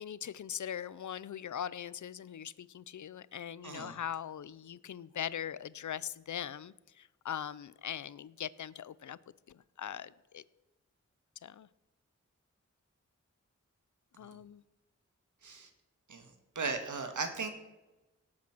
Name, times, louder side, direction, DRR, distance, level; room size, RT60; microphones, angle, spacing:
voice 1, 0.0-9.2 9.5-10.4 11.4-11.7 14.2-14.6, left 9 dB, 75° left, 19 dB, 0.6 m, -41 dB
voice 2, 3.6-4.0 15.4-15.7 16.1-17.5, right 4 dB, 80° right, 6 dB, 2.1 m, -37 dB
18.0 x 8.5 x 6.1 m, 1.1 s
wide cardioid pair, 75°, 30 cm